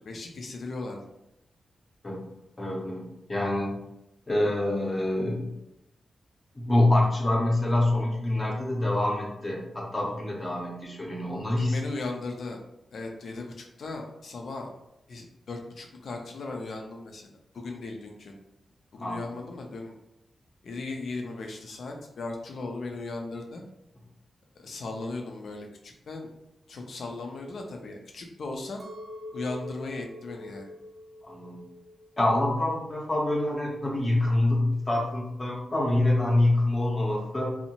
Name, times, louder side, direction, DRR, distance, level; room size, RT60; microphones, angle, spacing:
voice 1, 0.1-1.0 11.6-12.6 12.9-14.7 15.1-18.3 18.9-19.9 20.6-23.6 24.6-26.3 26.7-28.8 29.3-30.7, left 3 dB, 75° left, 2 dB, 0.5 m, -37 dB
voice 2, 2.6-3.8 4.3-5.5 6.5-11.8 19.0-19.2 31.2-31.6 32.2-37.5, left 1 dB, 30° left, -1 dB, 0.6 m, -26 dB
Chink clink, 28.8-33.1 33.5-34.1, left 1 dB, 65° right, 0.5 m, -45 dB
2.6 x 2.0 x 2.9 m, 0.86 s
cardioid pair, 80°, 0 cm